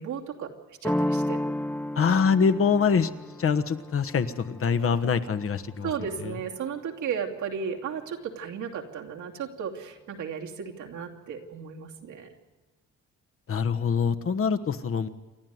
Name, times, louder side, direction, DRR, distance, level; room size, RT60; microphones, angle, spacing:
voice 1, 0.0-1.4 5.8-12.3, right 7 dB, 80° right, 0 dB, 2.9 m, -35 dB
sound 1, 0.8-6.4, left 1 dB, 5° left, 0.7 m, -33 dB
voice 2, 1.9-3.1 3.4-5.9 13.5-15.1, left 6 dB, 45° left, 10 dB, 1.3 m, -24 dB
28.5 x 12.0 x 9.5 m, 1.2 s
cardioid pair, 90°, 30 cm